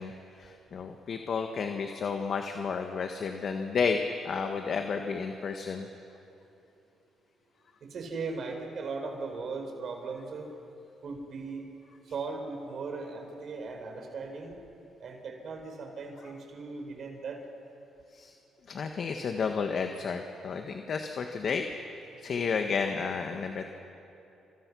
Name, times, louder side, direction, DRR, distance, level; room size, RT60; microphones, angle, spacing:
voice 1, 0.0-5.9 18.1-18.3 18.7-21.7 22.2-23.6, left 5 dB, 55° left, 5 dB, 1.5 m, -32 dB
voice 2, 7.8-10.5 11.0-11.6 12.1-14.6 15.0-17.4 22.4-22.5, right 4 dB, 60° right, 4 dB, 4.7 m, -38 dB
29.0 x 26.5 x 6.3 m, 2.8 s
cardioid pair, 90°, 0 cm